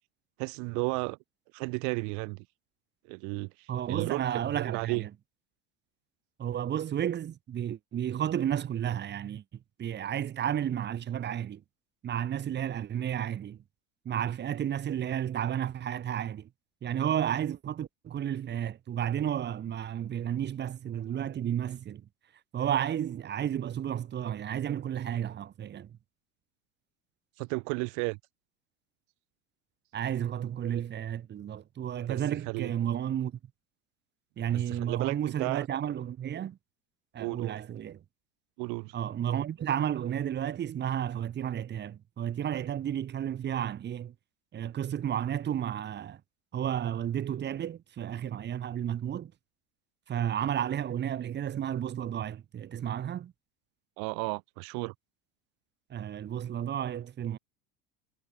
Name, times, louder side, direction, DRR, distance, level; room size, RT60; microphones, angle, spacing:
voice 1, 0.4-1.2 1.5-2.4 3.1-4.2 4.5-5.0 27.4-28.2 32.1-32.7 34.5-35.7 37.2-37.6 38.6-38.9 54.0-54.9, right 34 dB, 65° right, 2.9 m, -33 dB
voice 2, 3.7-5.1 6.4-9.4 9.8-11.6 12.0-13.6 14.0-16.5 16.8-22.1 22.5-26.0 29.9-33.4 34.4-36.6 37.1-38.0 38.9-44.1 44.5-46.2 46.5-49.3 50.1-53.3 55.9-57.4, right 10 dB, 35° right, 3.3 m, -32 dB
supercardioid pair, 115°, 31 cm